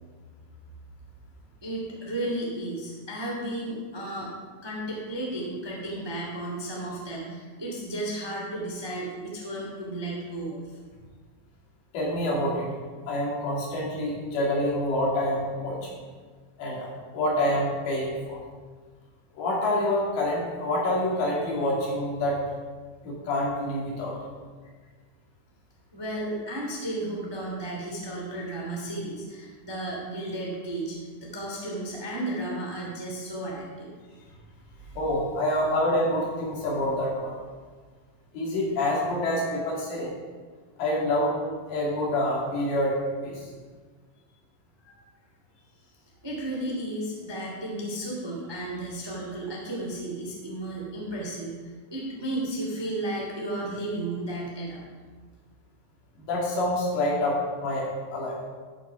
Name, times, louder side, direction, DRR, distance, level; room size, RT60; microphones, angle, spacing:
voice 1, 1.6-4.3 4.6-10.6 25.9-33.9 46.2-54.8, right 1 dB, 15° right, -3 dB, 0.8 m, -33 dB
voice 2, 11.9-12.7 13.1-15.9 16.6-18.4 19.3-22.4 23.0-24.1 35.0-37.3 38.3-40.1 40.8-41.4 41.7-43.5 56.2-58.4, left 1 dB, 75° left, -4 dB, 4.9 m, -27 dB
15.0 x 6.2 x 5.8 m, 1.5 s
omnidirectional pair, 5.1 m